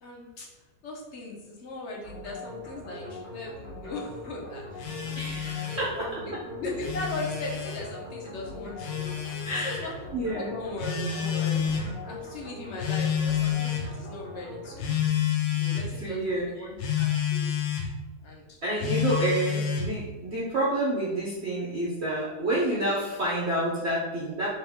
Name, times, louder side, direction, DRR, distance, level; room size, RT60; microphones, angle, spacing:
voice 1, 0.0-0.5 0.8-4.9 5.4-9.9 10.3-14.9 15.5-17.5 18.2-18.6, left 2 dB, 50° left, -2 dB, 0.9 m, -38 dB
sound 1, 2.0-15.3, left 2 dB, 30° left, 1.2 m, -42 dB
Telephone, 4.8-5.9 6.6-7.8 8.8-9.8 10.8-11.9 12.8-13.9 14.8-15.9 16.8-17.9 18.8-19.9, left 9 dB, 85° left, 1.2 m, -28 dB
voice 2, 5.1-6.4 9.4-10.6 16.0-16.7 18.6-24.5, right 1 dB, 55° right, -6 dB, 0.8 m, -29 dB
3.7 x 2.8 x 3.4 m, 1.2 s
omnidirectional pair, 1.7 m